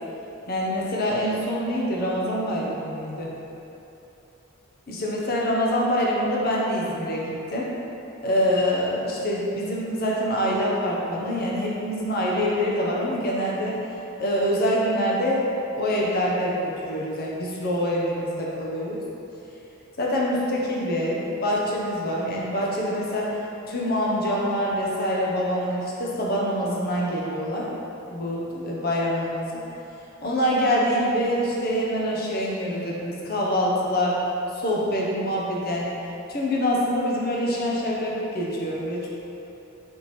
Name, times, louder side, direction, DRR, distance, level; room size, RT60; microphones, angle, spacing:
voice 1, 0.4-3.3 4.9-7.7 8.2-13.8 14.2-19.0 20.0-23.4 23.7-27.7 28.1-29.6 30.2-34.2 34.5-35.9 36.3-39.1, equal, 50° left, -4 dB, 0.7 m, -25 dB
3.5 x 3.1 x 4.1 m, 3.0 s
head